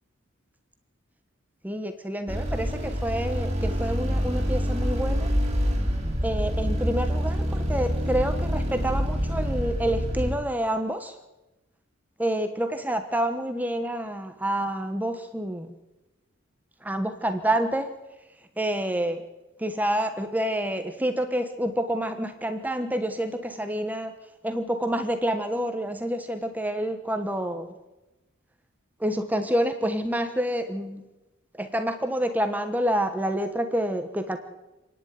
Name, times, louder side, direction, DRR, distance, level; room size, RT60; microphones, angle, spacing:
voice 1, 1.6-5.3 6.2-11.2 12.2-15.7 16.8-17.9 18.6-19.2 19.6-24.1 24.4-27.7 29.0-31.1 31.6-34.4, right 1 dB, 10° right, 7 dB, 1.2 m, -28 dB
sound 1, 2.3-10.3, equal, 30° right, 3.1 m, -26 dB
27.0 x 10.5 x 9.5 m, 1.0 s
head